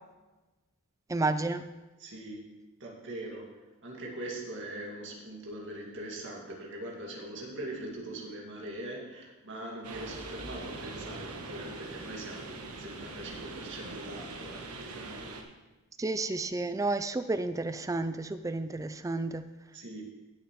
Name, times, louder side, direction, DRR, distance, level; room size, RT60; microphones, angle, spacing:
voice 1, 1.1-1.6 16.0-19.4, right 2 dB, 15° right, 11 dB, 0.4 m, -31 dB
voice 2, 2.0-15.3 19.7-20.1, right 1 dB, 55° right, -1 dB, 2.1 m, -42 dB
sound 1, 9.8-15.4, right 2 dB, 90° right, 1.3 m, -42 dB
16.5 x 6.7 x 3.2 m, 1.1 s
head